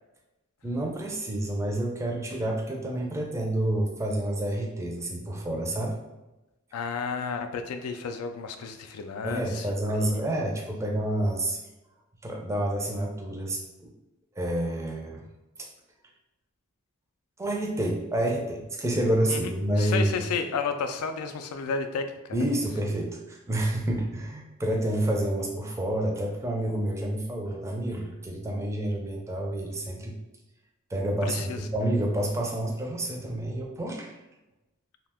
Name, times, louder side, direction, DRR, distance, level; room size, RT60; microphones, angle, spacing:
voice 1, 0.6-6.0 9.2-11.6 12.2-13.9 14.4-15.2 15.6-15.7 17.4-20.1 22.3-30.1 30.9-34.1, right 1 dB, 15° right, 0 dB, 0.4 m, -29 dB
voice 2, 6.7-9.7 9.9-10.3 19.3-19.5 19.8-22.4 31.2-31.6, left 5 dB, 85° left, 8 dB, 0.3 m, -32 dB
2.7 x 2.1 x 3.4 m, 1.0 s
head